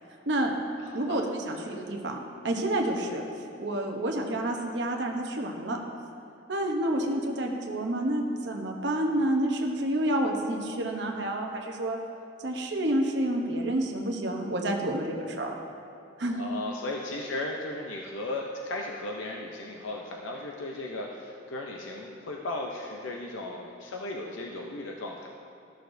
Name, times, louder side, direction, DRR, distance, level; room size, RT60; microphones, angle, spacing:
voice 1, 0.9-3.2 3.6-5.8 6.5-12.0 12.4-15.5 16.2-16.4, right 1 dB, 60° right, 1 dB, 0.8 m, -29 dB
voice 2, 16.4-25.3, left 2 dB, 85° left, 0 dB, 0.6 m, -36 dB
13.5 x 6.4 x 2.6 m, 2.5 s
head